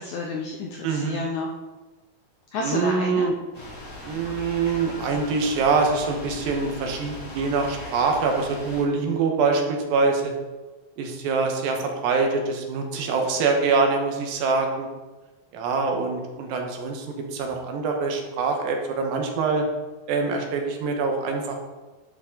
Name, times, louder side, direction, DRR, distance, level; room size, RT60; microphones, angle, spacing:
voice 1, 0.0-1.5 2.5-3.3, left 3 dB, 80° left, 0 dB, 1.7 m, -30 dB
voice 2, 0.8-1.2 2.6-3.3 4.0-10.2 11.0-14.9 15.5-17.1 17.3-19.7 20.1-21.6, right 4 dB, 80° right, 3 dB, 2.9 m, -24 dB
sound 1, 3.5-8.8, left 2 dB, 25° left, 2.7 m, -39 dB
10.5 x 6.4 x 3.7 m, 1.2 s
omnidirectional pair, 4.2 m